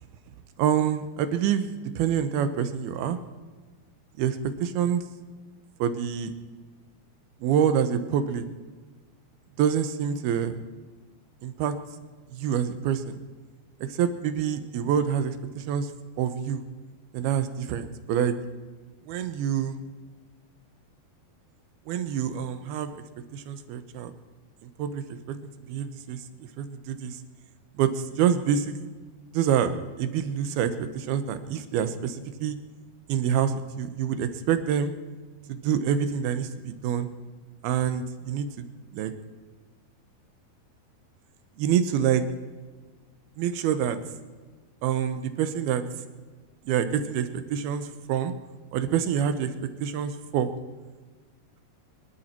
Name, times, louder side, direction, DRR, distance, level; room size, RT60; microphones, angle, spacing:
voice 1, 0.6-1.7 2.0-3.2 4.2-5.0 5.8-6.3 7.4-8.4 9.6-10.6 11.4-11.7 12.3-13.1 13.9-15.9 16.2-16.6 17.1-18.3 19.1-19.8 21.9-22.9 23.3-24.1 24.8-25.4 25.7-26.2 26.6-27.2 27.8-27.9 28.2-28.8 29.3-29.7 30.0-32.6 33.1-34.9 35.5-37.1 37.6-38.7 38.9-39.1 41.6-42.2 43.4-44.0 44.8-45.8 46.7-48.3 48.7-49.5 49.8-50.5, right 8 dB, 80° right, 11 dB, 2.9 m, -26 dB
25.0 x 12.0 x 4.5 m, 1.3 s
omnidirectional pair, 4.5 m